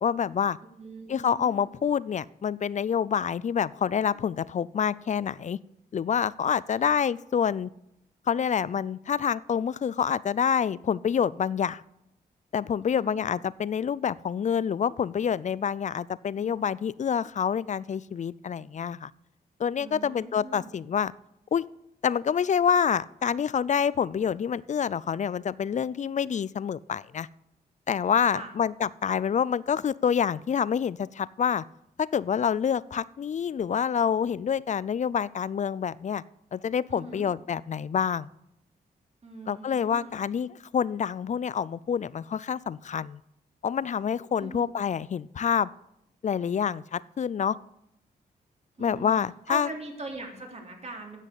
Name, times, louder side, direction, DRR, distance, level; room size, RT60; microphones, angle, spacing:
voice 1, 0.0-0.6 1.1-5.6 5.9-7.7 8.3-11.8 12.5-19.1 19.6-21.1 21.5-21.7 22.0-27.3 27.9-31.6 32.0-36.2 36.5-38.3 39.5-43.2 43.6-45.7 46.2-47.6 48.8-49.7, left 7 dB, 45° left, 20 dB, 0.4 m, -27 dB
voice 2, 0.8-1.7 6.8-7.0 12.8-13.2 16.4-16.6 19.8-20.7 28.2-28.5 36.9-37.3 39.2-40.1 44.4-44.7 48.8-49.2 49.5-51.2, right 2 dB, 40° right, 1 dB, 3.2 m, -41 dB
9.9 x 7.5 x 8.3 m, 0.81 s
cardioid pair, 65°, 17 cm